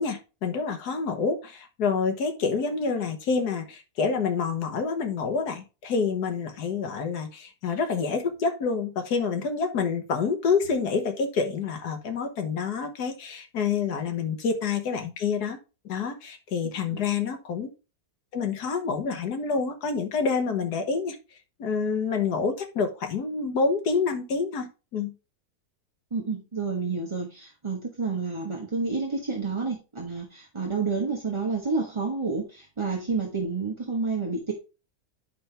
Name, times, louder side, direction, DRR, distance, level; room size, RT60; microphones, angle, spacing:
voice 1, 0.0-15.6 15.9-17.7 18.3-21.2 21.6-25.1, left 5 dB, 90° left, 6 dB, 1.7 m, -27 dB
voice 2, 16.6-17.0 26.1-34.5, right 4 dB, 20° right, -1 dB, 1.1 m, -29 dB
8.6 x 5.6 x 3.3 m, 0.30 s
omnidirectional pair, 1.7 m